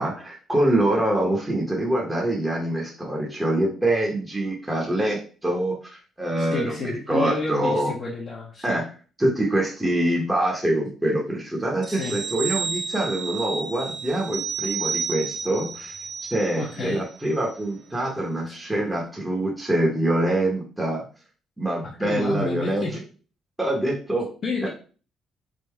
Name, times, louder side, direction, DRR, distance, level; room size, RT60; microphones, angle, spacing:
voice 1, 0.0-7.9 8.6-8.9 9.2-16.0 16.2-21.0 21.6-22.8 23.6-24.3 24.6-24.7, right 1 dB, 5° right, -2 dB, 0.8 m, -25 dB
voice 2, 6.4-8.8 11.9-12.2 16.5-17.0 22.0-23.0 24.4-24.7, left 3 dB, 40° left, -4 dB, 0.8 m, -30 dB
sound 1, 11.8-16.9 17.3-17.4, right 6 dB, 35° right, 0.4 m, -31 dB
3.5 x 2.6 x 4.3 m, 0.38 s
cardioid pair, 170°, 0 cm